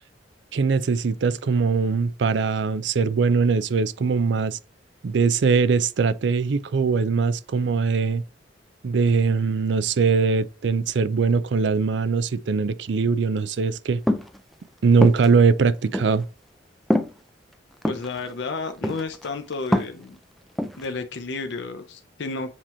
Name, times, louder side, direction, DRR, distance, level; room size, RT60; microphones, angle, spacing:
voice 1, 0.5-4.6 5.0-8.2 8.8-14.0 14.8-16.3, right 5 dB, 65° right, 0.4 m, -21 dB
sound 1, 14.1-14.4 15.0-15.3 15.9-16.1 16.9-17.1 17.8-18.1 18.8-19.3 19.5-20.0 20.6-20.8, equal, ahead, 0.4 m, -23 dB
voice 2, 17.9-20.2 20.8-22.5, left 3 dB, 65° left, 0.6 m, -32 dB
7.4 x 3.0 x 4.2 m
head